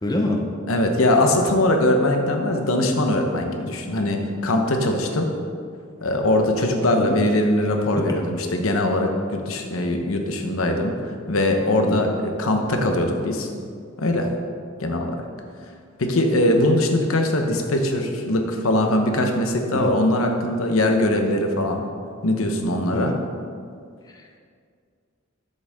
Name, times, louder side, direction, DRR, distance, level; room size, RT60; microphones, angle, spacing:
voice 1, 0.0-0.4 6.9-7.2 8.0-8.1 11.9-12.0 19.7-20.0 22.9-23.2 24.1-24.2, left 1 dB, 20° left, 1 dB, 0.7 m, -26 dB
voice 2, 0.7-5.3 6.0-13.5 14.0-14.3 14.8-15.3 16.0-21.8 22.2-23.1, left 1 dB, 85° left, 4 dB, 1.0 m, -21 dB
10.5 x 7.9 x 3.6 m, 2.2 s
head